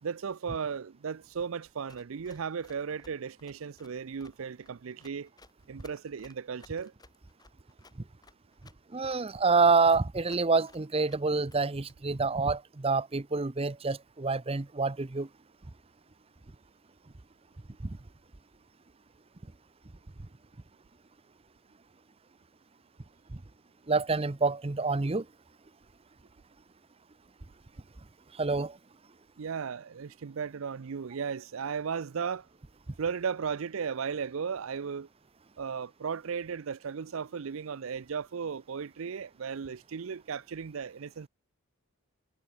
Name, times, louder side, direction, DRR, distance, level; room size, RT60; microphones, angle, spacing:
voice 1, 0.0-5.3 5.7-6.9 29.4-32.5 33.0-35.1 35.6-41.3, right 6 dB, 70° right, 0.5 m, -35 dB
Run, 1.9-11.9, left 2 dB, 20° left, 3.7 m, -58 dB
voice 2, 8.9-15.3 17.8-18.0 23.9-25.2 28.4-28.8, right 4 dB, 25° right, 0.7 m, -27 dB
head